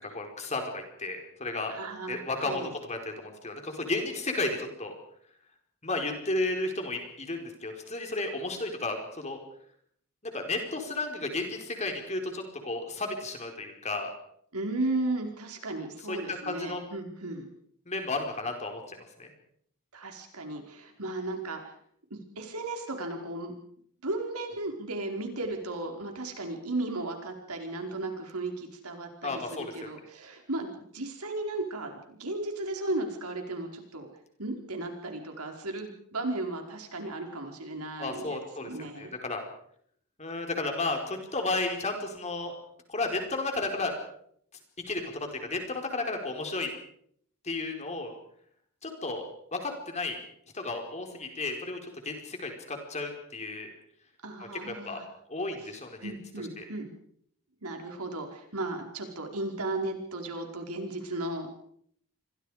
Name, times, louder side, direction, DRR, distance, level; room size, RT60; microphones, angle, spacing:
voice 1, 0.0-1.7 2.1-4.9 5.8-9.4 10.3-14.1 16.1-16.8 17.9-19.3 29.2-29.9 38.0-39.5 40.2-42.5 42.9-43.9 44.9-46.7 47.4-48.1 48.8-50.2 50.5-53.7 54.4-55.0 55.3-56.1 56.6-56.7, left 2 dB, 30° left, 4 dB, 4.7 m, -33 dB
voice 2, 1.7-2.7 14.5-17.4 19.9-21.7 22.1-23.5 24.0-30.7 30.9-34.1 34.4-39.1 54.2-55.0 56.0-56.9 57.6-61.5, right 2 dB, 80° right, 3 dB, 4.8 m, -35 dB
28.5 x 23.5 x 5.0 m, 0.66 s
head